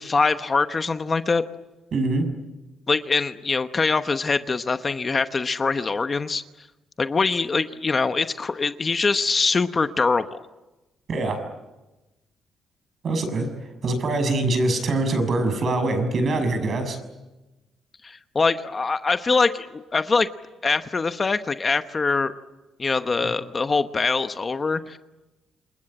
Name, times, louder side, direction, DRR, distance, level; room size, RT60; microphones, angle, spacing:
voice 1, 0.0-1.4 2.9-6.4 7.0-10.4 18.0-20.3 20.6-22.3 22.8-25.0, left 4 dB, 30° left, 10 dB, 1.0 m, -23 dB
voice 2, 1.9-2.3 11.1-11.4 13.0-17.0 23.2-23.3, right 2 dB, 50° right, 8 dB, 6.5 m, -24 dB
28.5 x 22.0 x 8.8 m, 1.1 s
cardioid pair, 105°, 0 cm